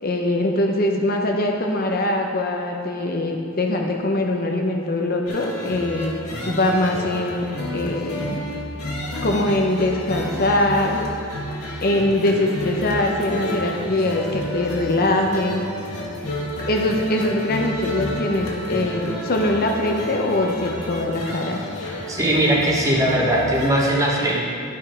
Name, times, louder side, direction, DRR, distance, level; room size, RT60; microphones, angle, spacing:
voice 1, 0.0-6.1 6.4-7.5 7.7-8.4 9.2-11.0 11.8-15.6 16.7-21.6, left 1 dB, 40° left, 2 dB, 0.6 m, -22 dB
sound 1, 5.3-23.7, left 1 dB, 90° left, 1.8 m, -30 dB
voice 2, 22.1-24.5, right 1 dB, 15° right, -3 dB, 1.0 m, -19 dB
12.0 x 5.6 x 4.4 m, 2.4 s
head